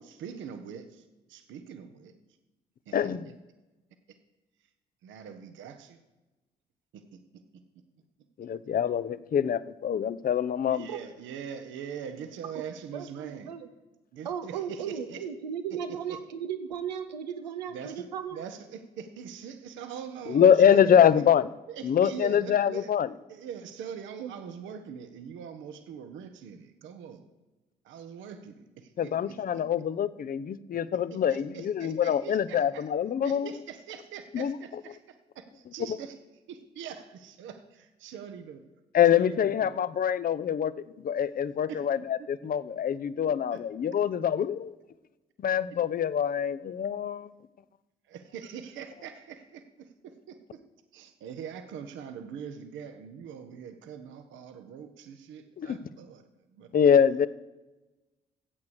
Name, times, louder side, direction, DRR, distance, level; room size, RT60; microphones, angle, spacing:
voice 1, 0.0-2.1 2.9-3.1 5.0-6.0 6.9-7.6 10.7-13.5 14.1-15.2 16.1-16.2 17.7-18.0 18.3-21.2 21.7-22.9 23.3-27.3 27.8-29.6 31.1-32.8 33.2-36.2 36.5-38.6 39.1-39.8 41.7-41.8 42.2-42.3 43.5-43.6 48.1-50.6 50.9-56.7, right 7 dB, 65° right, 8 dB, 1.0 m, -43 dB
voice 2, 2.9-3.3 8.4-10.9 20.3-21.5 21.8-23.1 29.0-33.5 34.3-34.5 38.9-40.7 41.0-44.7 45.4-47.3 55.6-55.8 56.7-57.3, left 8 dB, 45° left, 17 dB, 0.6 m, -24 dB
voice 3, 12.9-13.7 14.2-18.4 24.2-24.3, right 8 dB, 90° right, 8 dB, 0.8 m, -36 dB
14.0 x 8.3 x 4.7 m, 1.1 s
hypercardioid pair, 45°, 21 cm